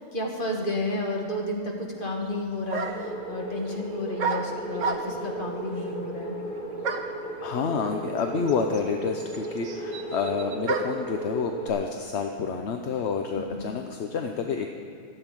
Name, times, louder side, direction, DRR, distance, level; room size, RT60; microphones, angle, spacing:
voice 1, 0.0-6.4 13.3-13.7, left 1 dB, 35° left, 0 dB, 1.9 m, -32 dB
sound 1, 2.2-2.3 2.7-3.2 4.2-5.3 6.8-7.2 8.2-8.3 8.5-11.1, right 4 dB, 55° right, 1.2 m, -31 dB
sound 2, 2.8-11.7, right 2 dB, 5° left, 3.1 m, -35 dB
voice 2, 7.4-14.7, left 5 dB, 55° left, 4 dB, 0.8 m, -29 dB
14.0 x 7.9 x 9.0 m, 2.5 s
omnidirectional pair, 1.6 m